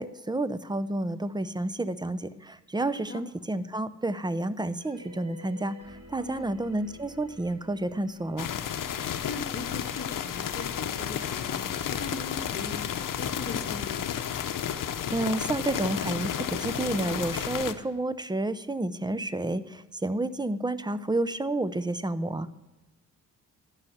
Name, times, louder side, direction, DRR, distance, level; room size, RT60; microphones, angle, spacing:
voice 1, 0.0-8.5 15.1-22.5, right 2 dB, 15° right, 14 dB, 0.6 m, -30 dB
sound 1, 4.6-10.3, left 2 dB, 75° right, 3.6 m, -52 dB
voice 2, 6.1-6.5 8.9-14.0, left 3 dB, 35° left, 3 dB, 1.4 m, -40 dB
sound 2, 8.4-17.7, left 9 dB, 80° left, 0.8 m, -32 dB
12.5 x 5.7 x 7.9 m, 1.1 s
cardioid pair, 75°, 32 cm